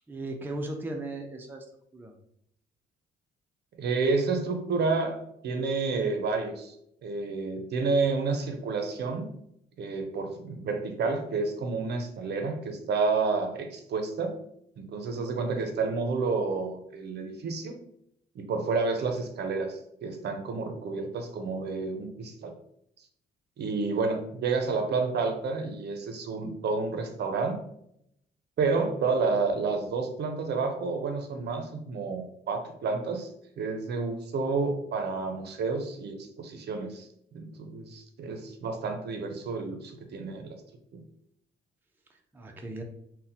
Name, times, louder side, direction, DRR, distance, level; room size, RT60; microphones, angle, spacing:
voice 1, 0.1-1.6 1.9-2.1 42.3-42.8, right 2 dB, 10° right, 3 dB, 0.4 m, -36 dB
voice 2, 3.8-6.7 7.0-9.3 9.8-14.3 14.8-17.7 18.4-22.5 23.6-27.6 28.6-33.3 33.6-37.1 37.3-40.6 40.9-41.0, right 4 dB, 55° right, 5 dB, 0.6 m, -30 dB
2.6 x 2.1 x 4.0 m, 0.73 s
cardioid pair, 90°, 20 cm